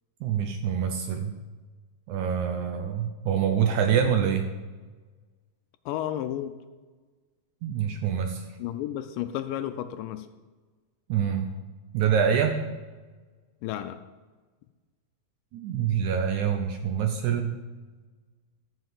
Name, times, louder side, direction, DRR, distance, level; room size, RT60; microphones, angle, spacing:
voice 1, 0.2-1.4 2.1-4.5 7.6-8.5 11.1-11.5 11.9-12.6 15.5-17.5, right 8 dB, 75° right, 5 dB, 1.9 m, -25 dB
voice 2, 5.9-6.6 8.6-10.3 13.6-14.0, left 12 dB, 80° left, 10 dB, 2.1 m, -32 dB
13.5 x 5.1 x 7.6 m, 1.3 s
omnidirectional pair, 4.1 m